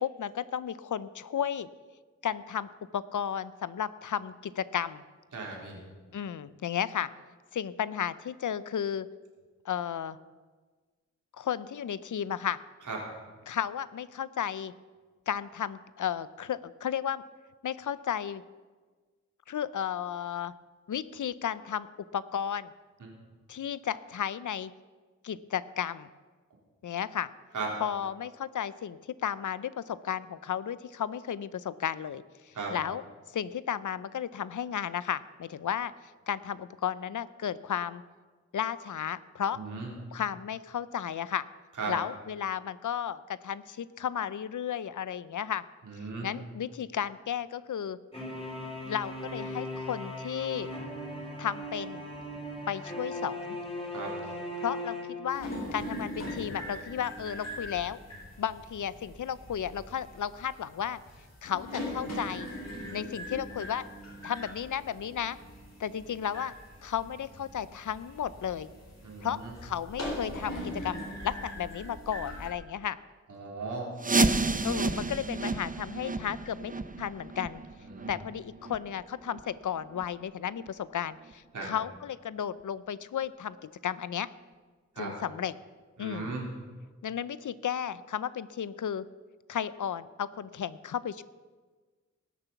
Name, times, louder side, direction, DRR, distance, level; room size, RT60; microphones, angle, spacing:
voice 1, 0.0-1.7 2.2-5.0 6.1-7.1 7.5-9.1 9.6-10.2 11.4-12.6 13.5-14.7 15.3-17.2 17.6-18.4 19.5-20.5 20.9-21.9 22.1-22.7 23.5-24.7 25.2-26.1 26.8-27.3 27.8-33.0 33.3-35.9 36.3-38.0 38.5-39.6 40.1-41.5 41.9-45.6 46.2-48.0 48.8-50.7 51.4-52.0 52.7-53.6 54.6-58.0 58.4-61.0 61.4-62.5 62.9-63.8 64.2-65.4 65.8-66.5 66.8-68.7 69.2-73.0 74.1-74.3 74.6-76.7 77.0-77.6 78.1-84.3 85.0-85.6 86.0-86.4 87.0-89.0 89.5-91.2, left 9 dB, 85° left, 17 dB, 0.6 m, -33 dB
voice 2, 5.3-5.8 12.9-13.0 23.0-23.1 27.5-27.7 32.6-32.7 39.6-39.9 41.8-41.9 45.9-46.3 53.9-54.1 69.0-69.5 73.3-73.9 77.9-78.1 81.5-81.7 85.0-85.1 86.0-86.4, right 4 dB, 85° right, -2 dB, 3.8 m, -36 dB
sound 1, 48.1-55.9, left 1 dB, 20° left, 3.9 m, -38 dB
sound 2, 55.3-72.5, left 1 dB, 60° left, 3.8 m, -41 dB
sound 3, 74.0-79.6 79.9-80.0 80.6-80.7 81.3-81.4 81.9-82.0, right 3 dB, 30° right, 0.7 m, -31 dB
19.0 x 6.9 x 7.0 m, 1.4 s
wide cardioid pair, 80°, 30 cm